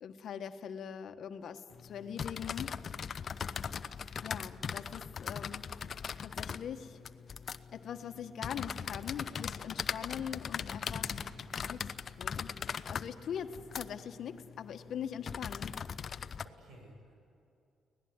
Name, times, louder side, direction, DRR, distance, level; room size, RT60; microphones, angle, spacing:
voice 1, 0.0-2.8 4.2-5.7 6.2-7.0 7.7-11.2 11.6-12.5 12.9-15.7 16.1-16.2, left 8 dB, 65° left, 8 dB, 1.3 m, -42 dB
sound 1, 1.7-16.5, left 6 dB, 50° left, 0.7 m, -40 dB
voice 2, 10.8-11.6 16.4-17.1, equal, 75° right, 2 dB, 8.0 m, -53 dB
24.5 x 18.0 x 9.6 m, 2.6 s
cardioid pair, 90°, 0 cm